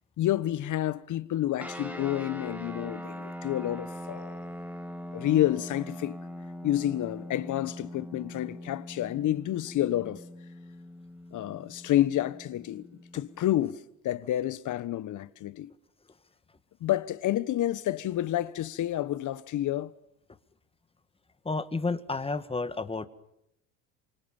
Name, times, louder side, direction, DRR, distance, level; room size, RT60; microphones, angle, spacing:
voice 1, 0.2-4.4 5.1-6.2 6.6-10.2 11.3-12.9 13.1-15.7 16.8-19.9, left 13 dB, 45° left, 1.3 m, -29 dB
sound 1, 1.6-13.4, equal, 5° right, 2.7 m, -42 dB
voice 2, 21.4-23.1, left 3 dB, 15° left, 1.7 m, -31 dB
28.0 x 25.0 x 7.2 m
hypercardioid pair, 85°, 41 cm